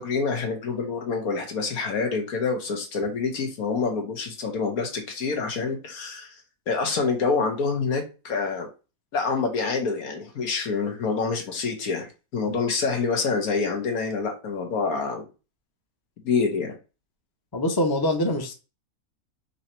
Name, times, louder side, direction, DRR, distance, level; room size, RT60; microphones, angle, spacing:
voice 1, 0.0-6.3 6.7-8.7 9.1-15.3 16.2-16.8, left 4 dB, 85° left, 1.6 m, -27 dB
voice 2, 17.5-18.5, left 1 dB, 20° left, 0.6 m, -24 dB
4.0 x 2.8 x 4.4 m
omnidirectional pair, 1.5 m